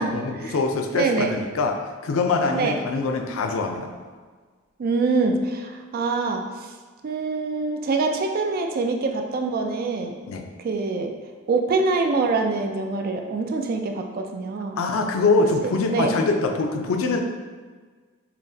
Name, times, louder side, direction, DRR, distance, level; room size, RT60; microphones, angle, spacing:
voice 1, 0.0-1.8 2.0-3.9 10.3-10.4 14.8-17.2, left 3 dB, 85° left, 4 dB, 0.4 m, -23 dB
voice 2, 0.9-1.3 2.5-2.8 4.8-6.4 7.0-10.1 10.6-11.1 11.5-14.8 15.6-16.2, right 3 dB, 45° right, 4 dB, 0.3 m, -24 dB
5.7 x 2.1 x 2.6 m, 1.5 s
head